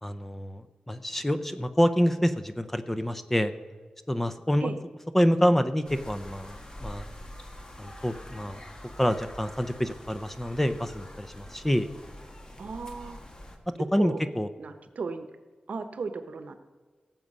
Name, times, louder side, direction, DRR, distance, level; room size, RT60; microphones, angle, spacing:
voice 1, 0.0-3.5 4.1-4.7 5.1-7.1 7.8-8.6 9.0-11.9 13.9-14.5, equal, 10° left, 10 dB, 0.6 m, -27 dB
sound 1, 5.8-13.6, left 1 dB, 30° left, 1.5 m, -45 dB
voice 2, 12.6-13.2 14.0-14.2 14.6-15.3 15.7-16.6, right 4 dB, 75° right, 9 dB, 1.0 m, -35 dB
17.5 x 7.5 x 5.5 m, 1.5 s
wide cardioid pair, 125°, 3 cm